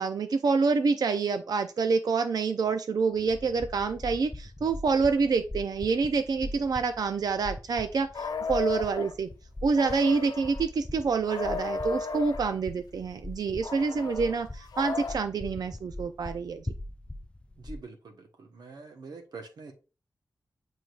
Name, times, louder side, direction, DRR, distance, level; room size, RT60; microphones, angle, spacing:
voice 1, 0.0-9.3 9.6-16.7, right 4 dB, 70° right, 0.5 m, -27 dB
sound 1, 3.1-17.8, left 1 dB, 15° left, 0.4 m, -42 dB
sound 2, 8.1-9.1 9.7-10.6 11.3-12.5 13.6-15.2, left 5 dB, 75° left, 0.7 m, -34 dB
voice 2, 17.6-19.7, right 4 dB, 90° right, 1.1 m, -45 dB
7.7 x 4.9 x 2.5 m
wide cardioid pair, 115°, 7 cm